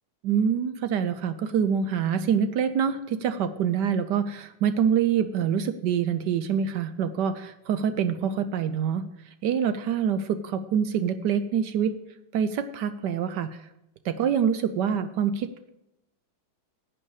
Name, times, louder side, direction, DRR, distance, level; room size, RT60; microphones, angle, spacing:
voice 1, 0.2-9.0 9.4-11.9 12.3-13.6 14.0-15.5, right 7 dB, 75° right, 11 dB, 1.2 m, -25 dB
11.0 x 8.6 x 4.8 m, 0.86 s
omnidirectional pair, 2.1 m